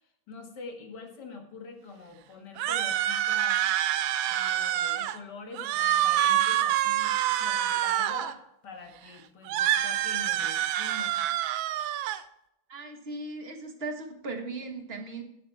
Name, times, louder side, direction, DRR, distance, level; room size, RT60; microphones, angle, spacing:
voice 1, 0.0-3.6 4.3-11.2, left 4 dB, 60° left, 3 dB, 2.2 m, -44 dB
sound 1, 2.6-5.2 5.5-8.3 9.5-12.2, right 12 dB, 90° right, 1.4 m, -26 dB
voice 2, 12.7-15.2, right 3 dB, 35° right, 5 dB, 1.5 m, -37 dB
9.8 x 7.5 x 4.5 m, 0.82 s
omnidirectional pair, 2.1 m